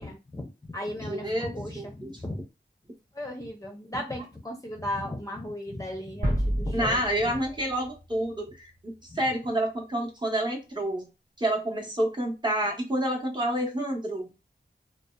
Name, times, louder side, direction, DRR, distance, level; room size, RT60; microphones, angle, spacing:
voice 1, 0.0-2.4 3.1-7.4 9.1-9.2, left 1 dB, 15° left, 1 dB, 0.5 m, -36 dB
voice 2, 1.1-2.1 6.7-11.1 11.4-14.3, right 1 dB, 25° right, 0 dB, 0.8 m, -29 dB
sound 1, 6.2-9.1, equal, 50° right, 1.0 m, -31 dB
2.7 x 2.1 x 2.2 m, 0.29 s
wide cardioid pair, 55°, 20 cm